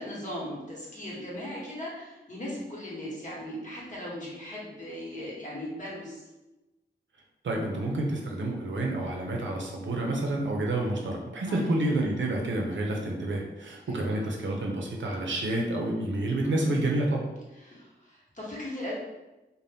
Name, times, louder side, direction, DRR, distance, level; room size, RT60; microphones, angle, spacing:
voice 1, 0.0-6.3 11.5-11.7 13.9-14.0 16.4-16.7 17.5-18.9, left 1 dB, 45° left, -5 dB, 1.0 m, -38 dB
voice 2, 7.4-17.3, right 1 dB, 90° right, 0 dB, 0.5 m, -29 dB
2.6 x 2.1 x 3.3 m, 1.1 s
wide cardioid pair, 80°, 19 cm